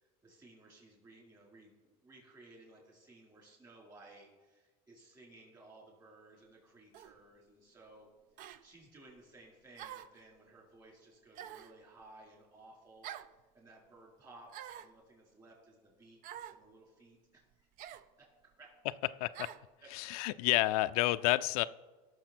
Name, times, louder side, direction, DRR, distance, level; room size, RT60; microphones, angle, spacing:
voice 1, 0.0-8.1 8.3-17.7 18.2-18.3 18.6-18.8 19.8-19.9, right 2 dB, 20° right, -2 dB, 4.3 m, -58 dB
sound 1, 6.9-7.2 8.4-8.6 9.8-10.2 11.4-11.8 13.0-13.3 14.5-14.9 16.2-16.6 17.8-18.1 19.3-19.6, right 11 dB, 45° right, 0.5 m, -47 dB
voice 2, 19.9-21.6, left 18 dB, 75° left, 13 dB, 0.4 m, -30 dB
17.0 x 6.6 x 4.5 m, 1.3 s
supercardioid pair, 140°, 19 cm